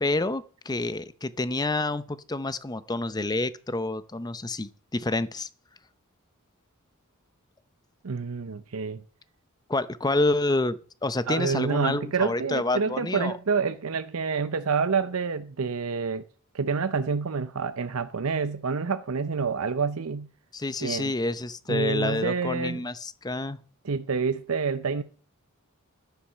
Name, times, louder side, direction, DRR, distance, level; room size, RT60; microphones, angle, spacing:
voice 1, 0.0-5.5 9.7-13.4 20.5-23.6, left 2 dB, 20° left, 0.7 m, -28 dB
voice 2, 8.0-9.0 11.3-16.3 16.5-20.3 20.8-21.1 21.7-22.8 23.8-25.0, right 5 dB, 85° right, 0.7 m, -28 dB
10.5 x 9.6 x 6.6 m
head